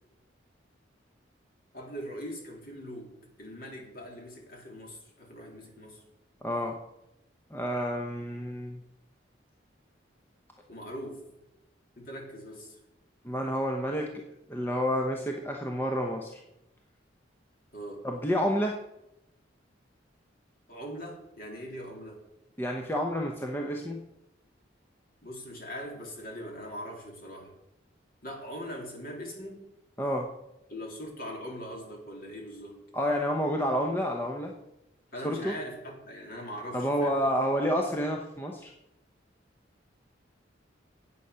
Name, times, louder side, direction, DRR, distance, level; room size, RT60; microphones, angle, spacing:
voice 1, 1.7-3.1 3.4-6.0 10.7-11.2 12.0-12.8 17.7-18.1 20.7-22.2 25.2-27.5 28.2-29.6 30.7-32.8 35.1-37.2, equal, 50° left, 0 dB, 2.9 m, -41 dB
voice 2, 6.4-6.8 7.5-8.8 13.2-14.2 14.5-16.4 18.0-18.8 22.6-24.0 30.0-30.3 32.9-34.5 35.2-35.5 36.7-38.7, equal, 10° left, 1 dB, 0.8 m, -29 dB
9.3 x 8.3 x 5.6 m, 0.87 s
head